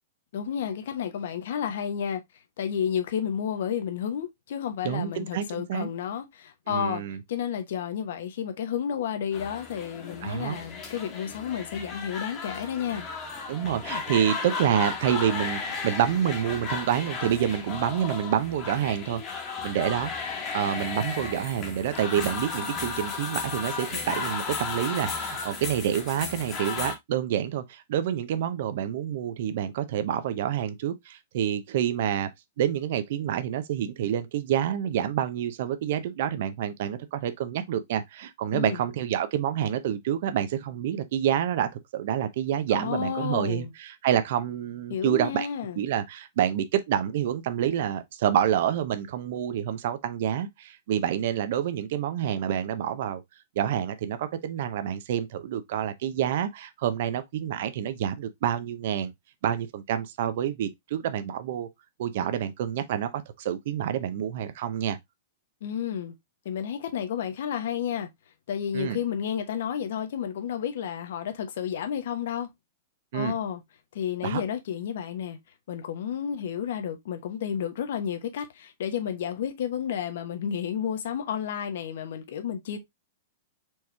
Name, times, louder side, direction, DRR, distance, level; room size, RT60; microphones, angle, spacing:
voice 1, 0.3-2.2 2.6-7.0 7.3-13.1 38.5-38.8 42.7-43.7 44.9-45.8 65.6-66.1 66.4-68.1 68.5-72.5 73.1-73.6 73.9-75.4 75.7-82.8, left 8 dB, 65° left, 1.0 m, -31 dB
voice 2, 4.8-5.9 6.7-7.2 10.2-10.6 13.5-19.2 19.6-20.1 20.5-32.3 32.6-45.5 45.8-53.2 53.6-59.1 59.4-61.7 62.0-65.0 68.7-69.0 73.1-73.3 74.2-74.4, right 10 dB, 55° right, 0.6 m, -28 dB
sound 1, 9.3-27.0, left 5 dB, 25° left, 1.2 m, -34 dB
4.5 x 3.0 x 3.3 m
hypercardioid pair, 155°, 0 cm